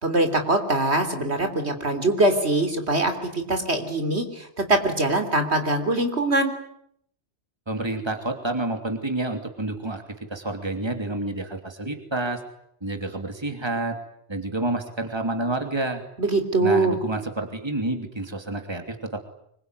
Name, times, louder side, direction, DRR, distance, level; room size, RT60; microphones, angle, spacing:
voice 1, 0.0-6.5 16.2-17.0, right 2 dB, 70° right, 7 dB, 3.7 m, -23 dB
voice 2, 7.7-12.4 12.8-14.0 14.3-16.0 16.6-19.2, right 2 dB, 25° right, 5 dB, 3.0 m, -29 dB
25.5 x 22.5 x 9.7 m, 0.71 s
omnidirectional pair, 1.2 m